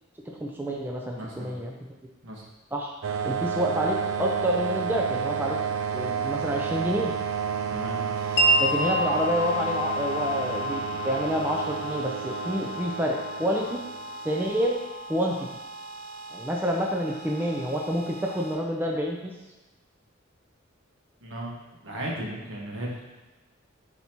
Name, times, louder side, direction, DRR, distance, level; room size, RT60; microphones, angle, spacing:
voice 1, 0.3-1.7 2.7-2.9 3.2-5.6 5.9-7.1 8.6-13.8 14.2-14.8 15.1-15.5 16.3-19.3, equal, 10° right, -1 dB, 0.5 m, -28 dB
voice 2, 1.1-1.6 2.2-2.4 7.7-8.0 21.2-21.5 21.8-23.0, right 1 dB, 70° right, -3 dB, 1.5 m, -35 dB
sound 1, 3.0-14.4, right 6 dB, 85° right, 0.4 m, -31 dB
sound 2, 8.2-18.5, right 3 dB, 45° right, 0.9 m, -42 dB
Wind chime, 8.4-16.0, equal, 55° left, 0.9 m, -30 dB
9.4 x 4.2 x 3.0 m, 1.1 s
head